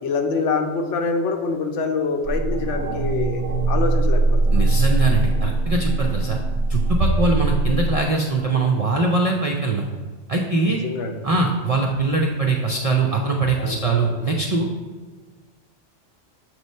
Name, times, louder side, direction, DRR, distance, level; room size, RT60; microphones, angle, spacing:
voice 1, 0.0-4.6 10.6-11.3 13.5-14.3, left 4 dB, 70° left, 5 dB, 1.0 m, -26 dB
sound 1, 2.2-8.0, right 2 dB, 35° right, 0.8 m, -21 dB
voice 2, 4.5-6.4 6.7-9.9 10.3-10.8 11.2-14.7, right 3 dB, 55° right, 0 dB, 0.4 m, -22 dB
6.9 x 3.1 x 5.4 m, 1.4 s
omnidirectional pair, 1.3 m